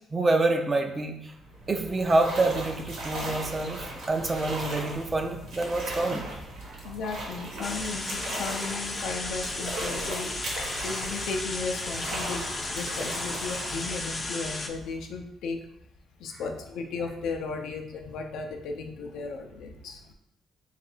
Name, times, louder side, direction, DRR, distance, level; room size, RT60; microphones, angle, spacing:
voice 1, 0.1-1.3 1.7-6.2, right 2 dB, 30° right, 4 dB, 0.5 m, -27 dB
sound 1, 1.3-15.1, right 1 dB, 80° right, 1.0 m, -37 dB
voice 2, 6.8-15.6 16.2-20.1, left 4 dB, 80° left, 4 dB, 0.5 m, -35 dB
sound 2, 7.6-14.7, left 2 dB, 30° left, 0.5 m, -34 dB
3.2 x 2.5 x 4.3 m, 0.77 s
cardioid pair, 90°, 0 cm